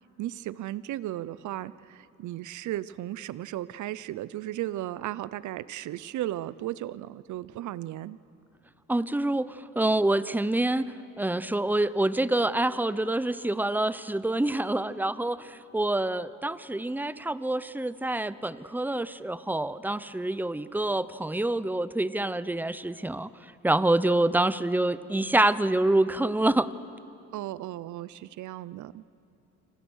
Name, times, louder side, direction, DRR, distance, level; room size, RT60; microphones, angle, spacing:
voice 1, 0.2-8.2 27.3-29.0, right 14 dB, 75° right, 18 dB, 0.7 m, -35 dB
voice 2, 8.9-10.8 11.2-26.7, right 1 dB, 5° right, 15 dB, 0.7 m, -26 dB
28.5 x 26.0 x 6.4 m, 2.7 s
cardioid pair, 90°, 30 cm